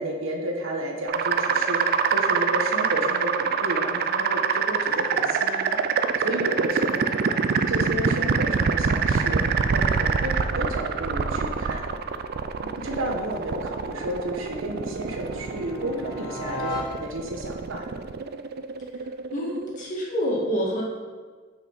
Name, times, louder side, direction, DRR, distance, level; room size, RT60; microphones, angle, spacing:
voice 1, 0.0-11.8 12.6-18.0, right 1 dB, 85° right, 1 dB, 1.2 m, -32 dB
sound 1, 1.1-19.8, right 6 dB, 50° right, 0.4 m, -25 dB
sound 2, 11.3-17.5, left 1 dB, 25° left, 2.2 m, -39 dB
voice 2, 19.3-20.8, equal, 40° left, -4 dB, 2.0 m, -27 dB
6.7 x 5.0 x 5.7 m, 1.5 s
head